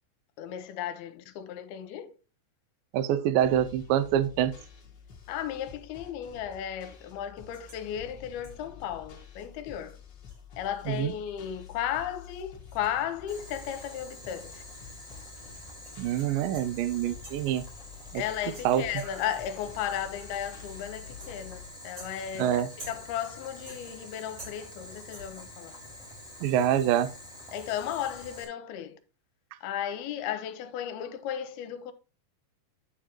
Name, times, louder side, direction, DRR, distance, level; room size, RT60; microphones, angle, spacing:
voice 1, 0.4-2.1 5.3-10.0 10.6-14.6 18.1-25.7 27.5-29.0 29.6-31.9, left 10 dB, 80° left, 2.5 m, -35 dB
voice 2, 2.9-4.5 10.9-11.1 16.0-17.6 18.1-18.2 18.6-18.8 22.4-22.7 26.4-27.1, right 11 dB, 75° right, 2.1 m, -25 dB
sound 1, 3.4-21.7, left 7 dB, 50° left, 1.2 m, -49 dB
sound 2, 7.5-7.9 8.4-8.7 9.4-9.5 9.8-9.9 10.3-14.1 14.3-14.4 15.2-16.8 17.2-17.6 18.2-19.4 20.2-20.5 21.2-21.6 22.0-23.3 23.7-24.1 24.4-24.9 25.1-25.5, right 1 dB, 25° right, 4.3 m, -51 dB
Boiling, 13.3-28.4, left 1 dB, ahead, 3.2 m, -47 dB
9.9 x 7.2 x 2.9 m
omnidirectional pair, 4.7 m